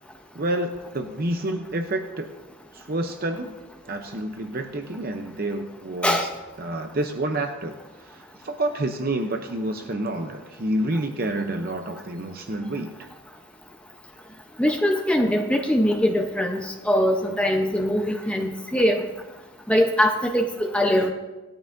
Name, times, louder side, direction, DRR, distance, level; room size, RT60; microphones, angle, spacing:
voice 1, 0.3-2.3 2.7-3.6 3.9-6.3 6.6-13.0, right 1 dB, 45° right, 5 dB, 0.7 m, -29 dB
voice 2, 14.6-19.0 19.7-21.1, equal, 5° left, 3 dB, 0.7 m, -22 dB
18.0 x 12.5 x 2.6 m, 1.1 s
head